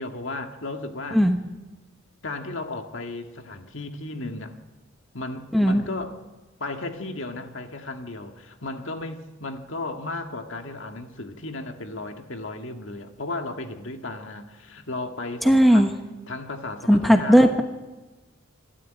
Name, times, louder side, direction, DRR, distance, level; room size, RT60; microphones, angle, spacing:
voice 1, 0.0-1.2 2.2-4.5 5.1-6.2 6.6-15.9 16.3-17.5, left 2 dB, 65° left, 5 dB, 1.9 m, -34 dB
voice 2, 5.5-5.8 15.4-15.9 16.9-17.6, equal, ahead, 6 dB, 1.1 m, -17 dB
26.5 x 12.5 x 9.1 m, 1.2 s
head